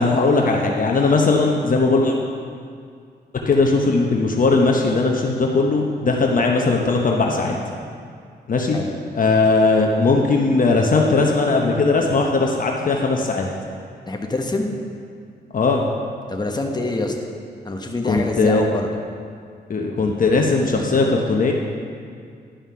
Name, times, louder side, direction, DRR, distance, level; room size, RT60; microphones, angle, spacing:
voice 1, 0.0-2.2 3.5-7.6 8.5-8.8 9.1-13.5 15.5-15.8 18.0-18.6 19.7-21.5, left 3 dB, 50° left, 0 dB, 0.9 m, -18 dB
voice 2, 14.1-14.7 16.3-17.1 17.6-18.9, left 2 dB, 25° left, 2 dB, 1.1 m, -25 dB
11.5 x 5.7 x 5.7 m, 2.2 s
cardioid pair, 75°, 18 cm